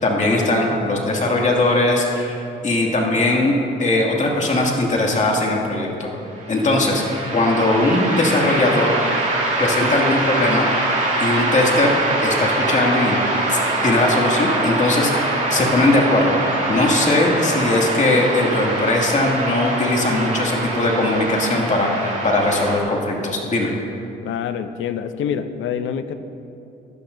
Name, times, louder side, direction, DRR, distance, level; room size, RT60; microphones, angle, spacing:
voice 1, 0.0-3.5 3.8-6.1 6.5-7.0 7.3-9.0 9.6-10.7 11.2-11.9 12.2-13.2 13.5-16.3 16.7-23.7, left 2 dB, 35° left, -1 dB, 2.3 m, -19 dB
sound 1, 6.4-22.8, right 2 dB, 40° right, 2.4 m, -23 dB
voice 2, 24.2-26.1, left 8 dB, 80° left, 10 dB, 0.6 m, -26 dB
16.0 x 11.5 x 2.7 m, 2.8 s
cardioid pair, 90°, 20 cm